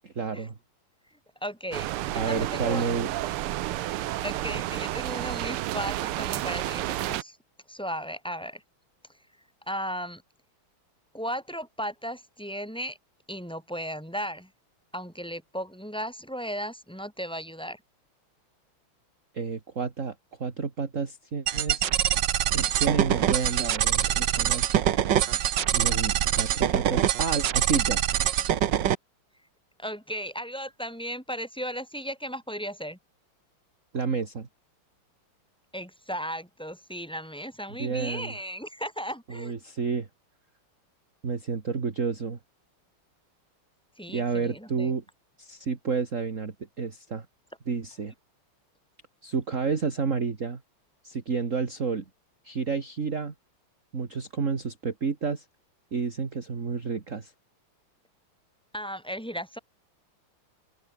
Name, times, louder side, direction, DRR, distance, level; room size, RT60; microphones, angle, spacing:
voice 1, 0.0-0.5 2.1-3.1 19.3-20.1 20.4-21.9 22.5-24.7 25.7-28.0 33.9-34.5 37.8-38.3 39.3-40.1 41.2-42.4 44.1-45.0 45.4-47.3 47.7-48.1 49.2-50.6 51.0-52.0 52.4-53.3 53.9-55.5 55.9-57.3, right 5 dB, 35° right, 2.3 m, -30 dB
voice 2, 1.4-2.9 4.2-7.4 7.7-8.6 9.7-10.2 11.1-13.0 13.3-14.5 14.9-17.8 29.8-33.0 35.7-39.5 44.0-44.9 58.7-59.6, equal, ahead, 6.9 m, -35 dB
sound 1, 1.7-7.2, right 15 dB, 85° right, 1.7 m, -31 dB
sound 2, 21.5-29.0, right 10 dB, 60° right, 1.6 m, -24 dB
open air
omnidirectional pair, 2.4 m